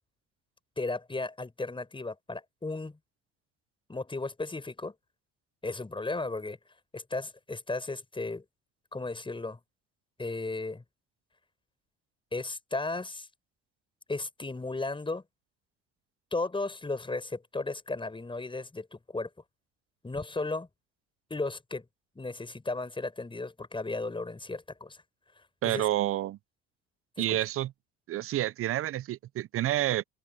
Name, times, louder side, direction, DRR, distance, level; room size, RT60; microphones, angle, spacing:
voice 1, 0.8-3.0 3.9-4.9 5.6-6.6 6.9-8.4 8.9-9.6 10.2-10.8 12.3-13.3 14.1-15.2 16.3-19.3 20.0-20.7 21.3-21.8 22.1-25.0 25.6-25.8 27.2-27.4, left 3 dB, 15° left, 6.0 m, -35 dB
voice 2, 25.6-26.4 27.2-27.7 28.1-30.0, right 14 dB, 50° right, 0.7 m, -29 dB
hypercardioid pair, 65°, 30 cm